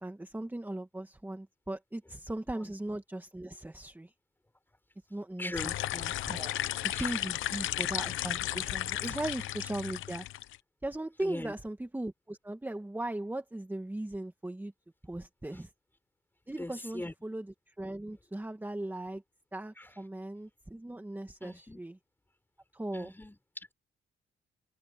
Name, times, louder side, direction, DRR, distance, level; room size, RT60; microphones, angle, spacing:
voice 1, 0.0-4.1 5.1-6.5 6.8-10.3 10.8-14.7 15.0-15.7 16.5-19.2 19.5-22.0 22.7-23.1, right 1 dB, 10° right, 2.0 m, -38 dB
voice 2, 5.4-5.7 6.9-7.2 9.0-9.2 11.2-11.5 15.5-15.6 16.6-17.1 19.8-19.9 21.4-21.8 22.9-23.7, left 1 dB, 10° left, 5.0 m, -41 dB
sound 1, 5.5-10.6, left 14 dB, 80° left, 0.8 m, -34 dB
cardioid pair, 90°, 20 cm